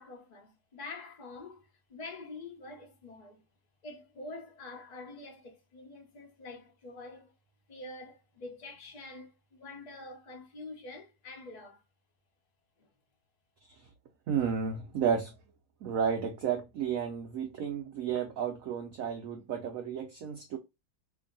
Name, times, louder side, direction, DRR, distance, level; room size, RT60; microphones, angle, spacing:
voice 1, 0.0-3.4 3.8-7.3 7.7-11.8 12.8-12.9, left 2 dB, 40° left, 0.5 m, -46 dB
voice 2, 14.3-15.3 15.8-20.6, right 7 dB, 80° right, 0.7 m, -32 dB
2.9 x 2.7 x 3.8 m
omnidirectional pair, 2.1 m